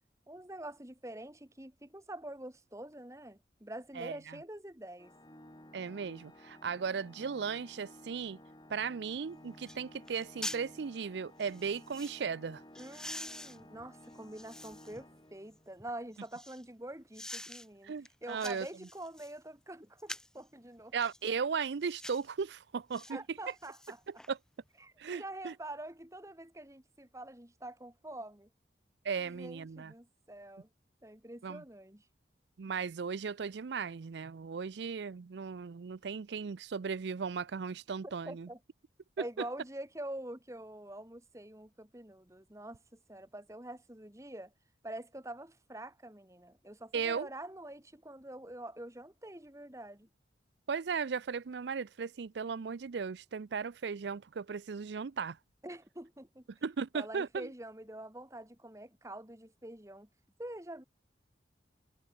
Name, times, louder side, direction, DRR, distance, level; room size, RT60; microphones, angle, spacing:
voice 1, 0.3-5.1 12.8-17.9 18.2-20.9 23.1-24.0 24.8-28.5 29.2-30.7 31.0-32.1 38.0-38.6 39.2-44.5 44.8-50.1 55.6-56.4 56.9-60.1 60.4-60.8, right 1 dB, 15° right, 1.8 m, -46 dB
voice 2, 4.0-4.4 5.7-8.4 8.7-12.6 17.8-18.7 20.9-23.2 24.3-24.4 25.0-25.5 29.0-29.9 31.4-31.6 32.6-38.5 46.9-47.3 50.7-55.4 56.6-57.5, right 6 dB, 70° right, 0.5 m, -36 dB
Organ, 5.0-15.8, left 1 dB, 25° left, 4.5 m, -55 dB
sound 1, 9.1-9.2 9.7-9.8 10.1-10.7 11.4-12.2 12.7-15.0 15.5-16.6 17.1-17.7 18.0-19.4 20.0-20.4 21.0-21.2 21.8-22.3 22.9-23.1 23.5-24.3 24.7-24.8, left 1 dB, 5° left, 0.6 m, -46 dB
head